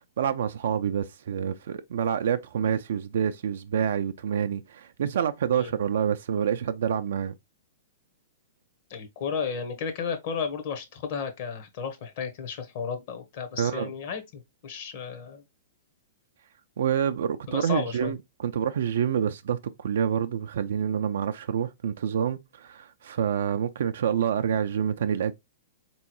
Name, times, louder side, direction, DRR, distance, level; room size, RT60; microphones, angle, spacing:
voice 1, 0.0-7.3 13.6-13.9 16.8-25.3, right 8 dB, 70° right, 0.3 m, -27 dB
voice 2, 8.9-15.4 17.5-18.1, left 6 dB, 55° left, 0.9 m, -33 dB
3.7 x 3.0 x 2.9 m
hypercardioid pair, 115°, 0 cm